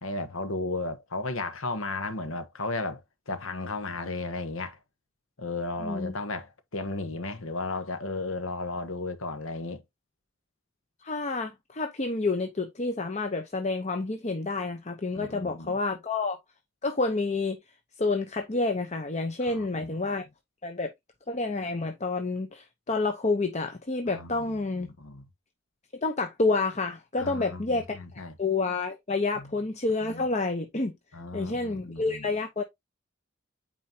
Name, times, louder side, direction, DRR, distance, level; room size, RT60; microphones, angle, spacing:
voice 1, 0.0-4.8 5.4-9.8 15.1-15.8 19.4-19.9 24.1-25.2 27.2-28.3 29.4-29.5 30.0-30.2 31.1-32.3, left 3 dB, 90° left, 1.3 m, -35 dB
voice 2, 5.8-6.1 11.0-16.4 16.8-17.6 18.0-20.3 20.6-20.9 21.3-24.9 26.0-28.0 28.4-30.9 31.3-32.6, left 3 dB, 35° left, 0.8 m, -29 dB
9.2 x 4.4 x 2.8 m
head